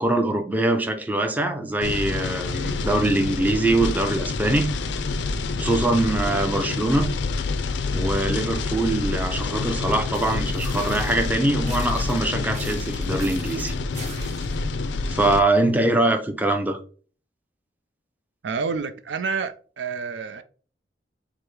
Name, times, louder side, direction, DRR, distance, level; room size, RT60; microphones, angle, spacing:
voice 1, 0.0-4.7 5.6-7.1 7.9-13.7 15.1-16.8, right 2 dB, 10° right, 0.5 m, -23 dB
sound 1, 1.8-15.4, left 3 dB, 90° left, 0.4 m, -27 dB
sound 2, 10.1-11.3 11.7-14.7, right 3 dB, 40° right, 1.5 m, -43 dB
voice 2, 18.4-20.4, right 5 dB, 85° right, 0.5 m, -29 dB
4.7 x 2.0 x 4.7 m
head